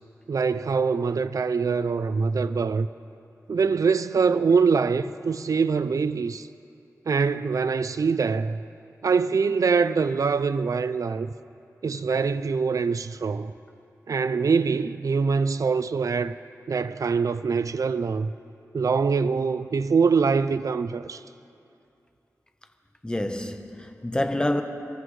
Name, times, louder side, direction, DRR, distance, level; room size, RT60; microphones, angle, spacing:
voice 1, 0.3-2.9 3.5-6.5 7.1-8.6 9.0-11.3 11.8-13.5 14.1-16.4 16.7-18.3 18.7-21.2, right 5 dB, 65° right, 0.4 m, -24 dB
voice 2, 23.0-24.6, left 1 dB, 15° left, 1.0 m, -27 dB
26.5 x 14.0 x 3.2 m
wide cardioid pair, 75°, 6 cm